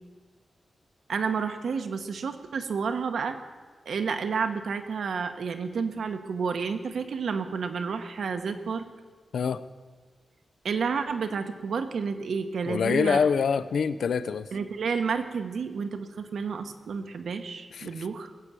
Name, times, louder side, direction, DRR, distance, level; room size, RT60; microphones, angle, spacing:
voice 1, 1.1-3.4 3.8-8.9 10.6-13.2 14.5-18.3, right 5 dB, 75° right, 7 dB, 1.1 m, -30 dB
voice 2, 12.6-14.5 17.7-17.9, left 6 dB, 90° left, 14 dB, 0.6 m, -25 dB
19.5 x 8.3 x 7.6 m, 1.4 s
wide cardioid pair, 175°, 0 cm